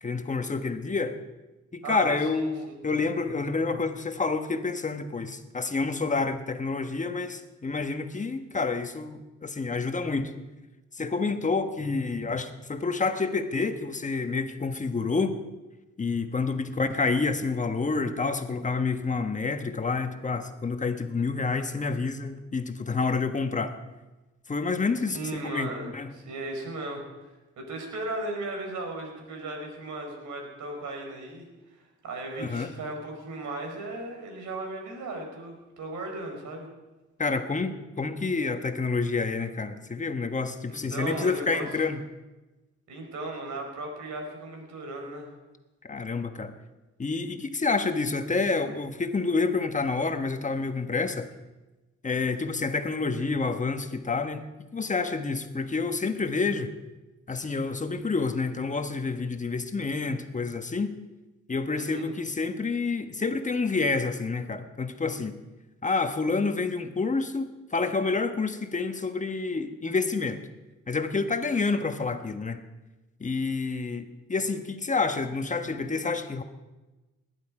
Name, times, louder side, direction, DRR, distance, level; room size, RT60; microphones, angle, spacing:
voice 1, 0.0-1.2 1.7-10.3 10.9-15.4 16.0-23.7 24.5-25.2 25.4-26.1 32.3-32.7 37.2-42.0 45.8-46.5 47.0-51.3 52.0-54.4 54.7-56.7 57.3-60.9 61.5-65.4 65.8-70.4 70.9-72.6 73.2-76.4, left 4 dB, 25° left, 8 dB, 1.3 m, -28 dB
voice 2, 1.8-2.8 25.1-36.7 40.7-41.7 42.9-45.3 61.7-62.1, right 2 dB, 75° right, 3 dB, 4.7 m, -36 dB
19.5 x 11.0 x 4.9 m, 1.1 s
cardioid pair, 90°, 30 cm